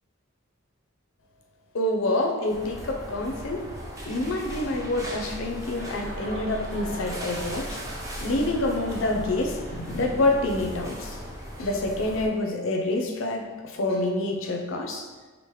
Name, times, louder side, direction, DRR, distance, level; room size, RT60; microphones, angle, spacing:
voice 1, 1.7-3.6 4.1-7.8 8.2-11.2 11.6-13.5 13.7-15.1, left 2 dB, 65° left, 2 dB, 0.5 m, -27 dB
sound 1, 2.5-12.3, equal, 15° right, 0.5 m, -37 dB
sound 2, 5.7-11.3, right 1 dB, 40° right, 0.9 m, -42 dB
4.6 x 2.0 x 3.1 m, 1.3 s
head